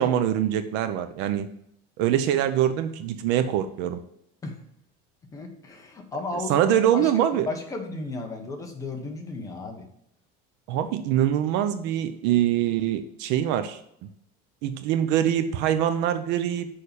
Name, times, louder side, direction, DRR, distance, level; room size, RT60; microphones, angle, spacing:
voice 1, 0.0-1.5 2.0-4.0 6.5-7.5 10.7-13.8 14.6-16.7, right 10 dB, 60° right, 10 dB, 0.7 m, -24 dB
voice 2, 5.3-7.1 7.5-9.8, left 3 dB, 15° left, 2 dB, 1.2 m, -34 dB
6.6 x 5.7 x 6.8 m, 0.75 s
cardioid pair, 175°, 20 cm